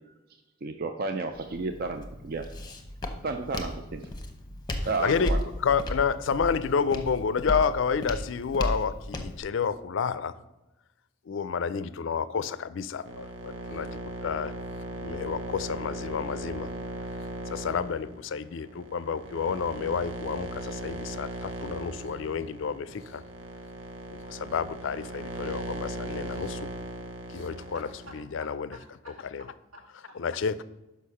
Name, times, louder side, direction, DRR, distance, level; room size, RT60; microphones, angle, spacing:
voice 1, 0.6-2.5 3.2-4.0 4.9-5.4, right 3 dB, 45° right, 0.4 m, -32 dB
Walk footsteps, 1.3-9.4, left 1 dB, 20° left, 0.8 m, -35 dB
voice 2, 5.0-10.4 11.3-14.5 15.0-16.7 17.5-23.2 24.3-26.7 27.3-28.7 29.3-29.5 30.1-30.6, left 6 dB, 60° left, 0.4 m, -30 dB
sound 1, 13.0-28.2, right 1 dB, 65° right, 0.9 m, -38 dB
voice 3, 27.5-30.2, equal, 80° right, 2.4 m, -51 dB
6.5 x 5.6 x 5.5 m
head